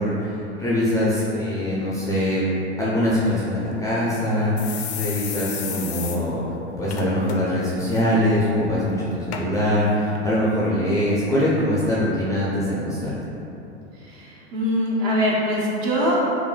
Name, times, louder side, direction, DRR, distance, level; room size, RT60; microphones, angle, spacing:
voice 1, 0.0-2.4 2.8-6.4 6.8-13.1, left 1 dB, 10° left, -8 dB, 0.5 m, -23 dB
sound 1, 3.6-3.7 4.1-4.2 4.6-6.2 6.5-6.6 6.9-7.3 7.7-8.0 8.7-8.8 9.3-9.4 10.2-10.3, left 8 dB, 70° left, 0.5 m, -32 dB
voice 2, 10.4-10.9 14.0-16.2, equal, 45° right, -5 dB, 1.0 m, -23 dB
5.1 x 2.6 x 2.4 m, 2.9 s
figure-of-eight pair, 90°, 34 cm